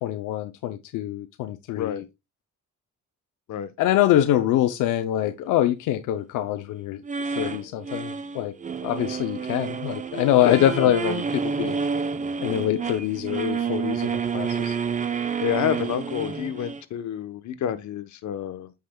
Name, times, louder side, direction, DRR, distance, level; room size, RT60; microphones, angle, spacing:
voice 1, 0.0-2.0 3.8-7.0 7.4-8.5 8.8-11.8 12.4-14.8, left 12 dB, 90° left, 0.6 m, -24 dB
sound 1, 7.0-16.8, right 6 dB, 25° right, 0.6 m, -29 dB
voice 2, 10.4-10.9 15.4-18.7, left 10 dB, 70° left, 1.0 m, -28 dB
8.5 x 5.8 x 2.2 m
cardioid pair, 90°, 30 cm